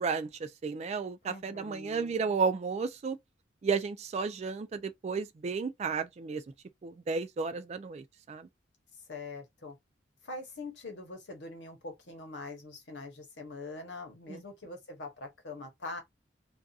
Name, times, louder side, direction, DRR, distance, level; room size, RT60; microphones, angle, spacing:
voice 1, 0.0-3.2 3.6-6.4 6.8-8.5 14.3-14.4, right 5 dB, 40° right, 0.3 m, -33 dB
voice 2, 1.2-2.4 9.1-9.8 10.2-16.0, left 2 dB, 75° left, 0.9 m, -43 dB
2.6 x 2.3 x 2.3 m
head